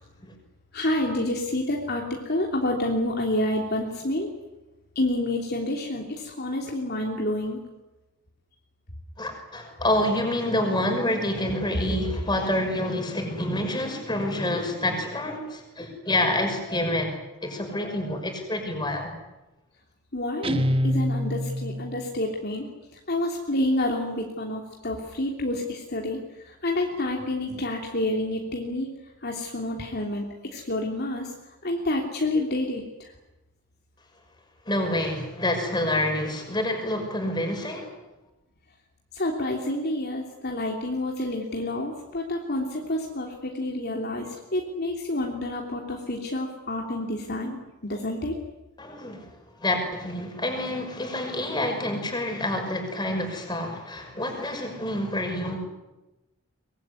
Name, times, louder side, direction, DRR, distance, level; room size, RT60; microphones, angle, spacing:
voice 1, 0.7-2.0 2.3-4.3 4.9-7.6 20.1-22.7 23.1-26.2 26.4-28.9 29.2-30.3 30.5-31.3 31.6-33.1 39.1-47.6 47.8-48.3, left 1 dB, 45° left, 0 dB, 3.1 m, -28 dB
voice 2, 9.2-17.1 17.4-19.1 34.7-37.9 48.8-55.6, left 1 dB, 20° left, 4 dB, 5.9 m, -27 dB
Guitar, 20.4-22.1, equal, 25° right, 1.1 m, -26 dB
24.0 x 22.0 x 9.7 m, 1.0 s
head